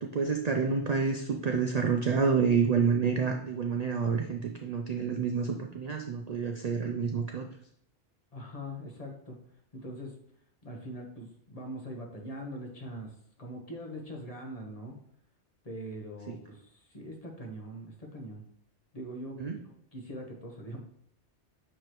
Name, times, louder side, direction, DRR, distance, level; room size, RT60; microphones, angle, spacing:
voice 1, 0.0-7.5 19.4-19.6, right 5 dB, 50° right, 4 dB, 0.5 m, -28 dB
voice 2, 8.3-9.5 9.7-10.2 10.6-15.0 15.6-18.4 18.9-20.8, equal, 35° left, 1 dB, 1.2 m, -42 dB
6.8 x 4.8 x 3.0 m, 0.69 s
omnidirectional pair, 1.1 m